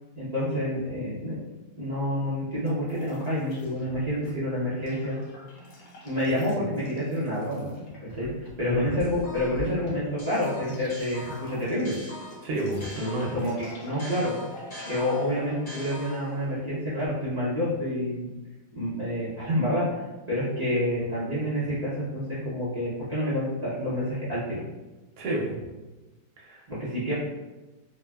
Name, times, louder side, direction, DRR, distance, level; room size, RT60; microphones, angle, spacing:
voice 1, 0.2-1.3 1.7-5.2 6.0-7.7 8.0-12.0 13.3-14.4 14.8-18.3 18.7-19.8 20.3-24.6 26.7-27.1, equal, 55° right, -11 dB, 0.4 m, -28 dB
sound 1, 2.7-4.3 4.6-17.1, left 1 dB, 85° left, 1.3 m, -44 dB
sound 2, 9.0-9.7 10.2-13.5 14.0-16.5, left 1 dB, 35° left, 0.6 m, -43 dB
voice 2, 12.4-13.4 25.2-25.6 26.4-26.6, right 1 dB, 75° right, -2 dB, 1.1 m, -30 dB
3.2 x 2.1 x 2.2 m, 1.1 s
omnidirectional pair, 1.8 m